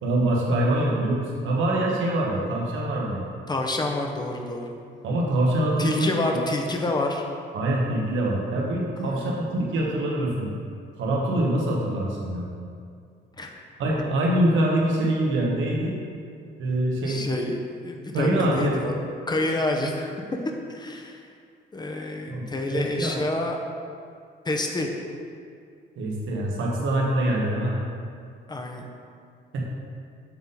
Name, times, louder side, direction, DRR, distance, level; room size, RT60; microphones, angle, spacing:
voice 1, 0.0-3.2 5.0-6.4 7.5-10.5 11.0-12.5 13.8-15.9 16.6-17.2 18.1-18.7 22.3-23.2 26.0-27.8 29.5-29.6, right 1 dB, 80° right, -2 dB, 1.3 m, -24 dB
voice 2, 3.5-4.7 5.8-7.2 9.0-9.3 13.4-13.5 13.9-14.0 17.1-17.6 17.8-18.9 19.3-20.2 20.7-21.2 21.7-23.6 24.4-24.9 28.5-28.9, left 2 dB, 20° left, 2 dB, 0.8 m, -28 dB
7.2 x 3.8 x 4.0 m, 2.3 s
cardioid pair, 90°, 20 cm